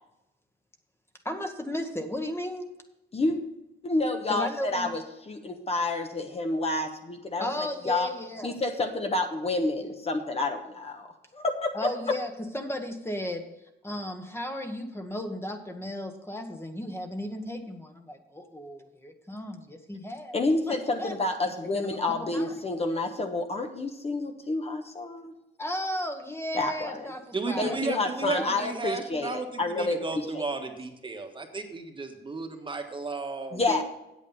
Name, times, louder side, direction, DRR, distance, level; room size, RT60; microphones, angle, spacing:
voice 1, 1.2-2.7 4.3-4.9 7.4-8.6 11.7-13.4 13.8-20.4 20.7-21.1 21.7-22.6 25.6-27.8 28.3-28.5 33.7-33.8, left 1 dB, 10° left, 5 dB, 1.2 m, -35 dB
voice 2, 3.8-8.1 8.4-11.1 11.3-11.9 20.3-25.3 26.5-27.1 27.6-30.0 30.3-30.4 33.5-33.8, left 2 dB, 30° left, 5 dB, 1.2 m, -29 dB
voice 3, 27.3-33.6, right 3 dB, 25° right, 4 dB, 1.4 m, -34 dB
8.3 x 8.3 x 5.6 m, 0.92 s
cardioid pair, 90°, 20 cm